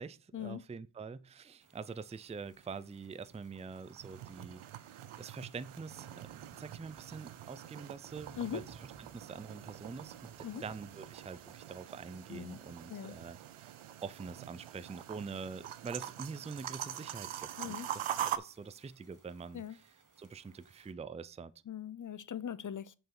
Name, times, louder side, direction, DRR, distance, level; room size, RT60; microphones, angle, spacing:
voice 1, 0.0-4.6 5.2-6.3 6.6-13.7 14.0-19.9 20.2-21.5, right 5 dB, 15° right, 0.4 m, -45 dB
sound 1, 1.6-20.9, right 4 dB, 40° right, 1.2 m, -61 dB
sound 2, 3.6-18.4, right 11 dB, 90° right, 0.6 m, -44 dB
voice 2, 12.3-12.6 12.9-13.2 17.6-17.9 19.5-19.8 21.7-22.9, left 8 dB, 40° left, 0.6 m, -40 dB
6.3 x 4.6 x 5.9 m
cardioid pair, 50°, 47 cm